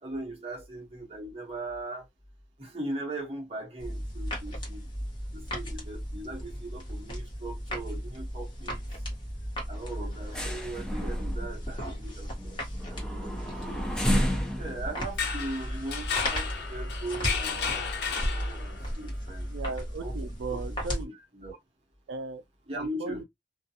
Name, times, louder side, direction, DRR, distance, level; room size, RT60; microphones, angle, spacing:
voice 1, 0.0-2.1 2.6-4.9 5.3-8.8 9.7-14.0 14.6-19.5 20.0-20.6 21.0-21.6 22.7-23.2, right 2 dB, 35° right, 0.9 m, -39 dB
sound 1, 3.8-21.0, equal, 25° left, 1.0 m, -36 dB
sound 2, 8.2-8.3 8.6-8.8 9.1-9.3 9.7-16.4 16.9-17.0, equal, 5° left, 0.5 m, -32 dB
sound 3, 15.0-18.9, left 6 dB, 70° left, 0.6 m, -33 dB
voice 2, 19.5-21.1 22.1-22.4 23.0-23.2, right 4 dB, 85° right, 0.3 m, -36 dB
2.3 x 2.2 x 2.7 m
head